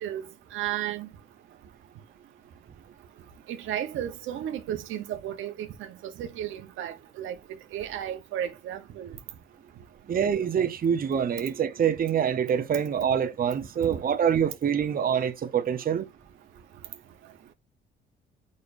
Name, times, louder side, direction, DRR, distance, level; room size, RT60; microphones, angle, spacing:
voice 1, 0.0-1.1 3.5-9.2 13.8-13.9, right 11 dB, 85° right, 1.0 m, -34 dB
voice 2, 10.1-16.1, right 8 dB, 45° right, 1.0 m, -25 dB
6.7 x 5.4 x 2.6 m
cardioid pair, 90°, 20 cm